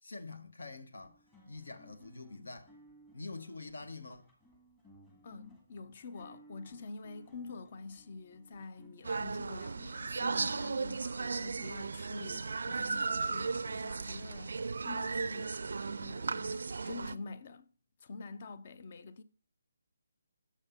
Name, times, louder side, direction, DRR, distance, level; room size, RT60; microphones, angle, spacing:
voice 1, 0.0-1.2 1.5-2.7 3.1-4.3, left 3 dB, 75° left, 1.2 m, -46 dB
sound 1, 0.9-17.4, left 1 dB, 15° left, 1.8 m, -63 dB
voice 2, 5.2-15.7 16.0-17.7 18.0-19.2, left 3 dB, 40° left, 0.6 m, -47 dB
sound 2, 9.0-17.2, right 4 dB, 65° right, 0.3 m, -36 dB
7.3 x 5.4 x 5.7 m
hypercardioid pair, 160°, 0 cm